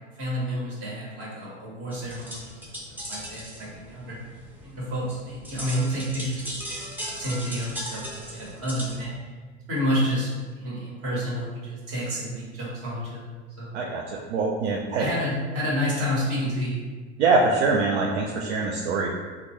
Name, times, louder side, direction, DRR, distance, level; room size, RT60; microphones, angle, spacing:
voice 1, 0.2-2.6 3.1-4.2 4.6-6.6 7.0-9.3 9.7-13.7 15.0-16.8, equal, 40° right, -5 dB, 1.5 m, -29 dB
sound 1, 1.9-9.1, equal, 5° right, 0.6 m, -38 dB
voice 2, 13.7-15.1 17.2-19.1, right 3 dB, 75° right, 0 dB, 0.5 m, -24 dB
3.6 x 2.3 x 3.0 m, 1.4 s
hypercardioid pair, 90°, 34 cm